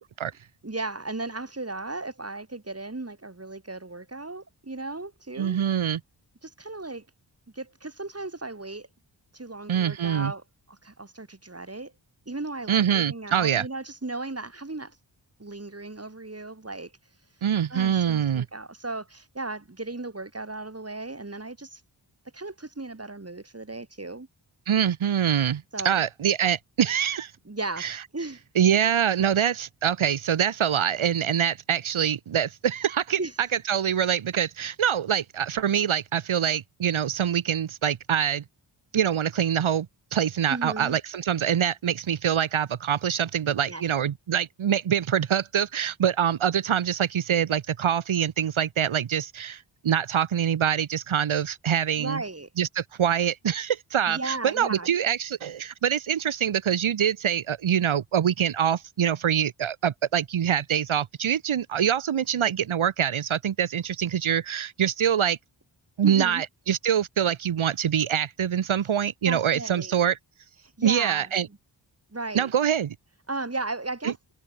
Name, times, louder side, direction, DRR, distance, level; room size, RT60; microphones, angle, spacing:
voice 1, 0.6-5.6 6.4-7.1 7.5-8.9 9.3-11.9 12.3-15.0 15.4-16.9 17.7-21.8 22.3-24.3 25.7-26.0 27.5-27.9 28.1-28.4 33.2-33.3 40.5-41.0 43.7-43.8 52.0-52.5 54.1-54.9 66.0-66.4 69.2-70.0 70.8-71.6 72.1-72.5 73.3-74.2, right 2 dB, 30° right, 5.8 m, -35 dB
voice 2, 5.4-6.0 9.7-10.3 12.7-13.6 17.4-18.4 24.7-27.3 27.8-28.0 28.5-38.4 38.9-39.9 40.1-52.2 52.6-65.4 66.0-70.2 70.8-71.5 72.3-72.9 74.0-74.1, right 9 dB, 90° right, 1.5 m, -25 dB
cardioid pair, 50°, 47 cm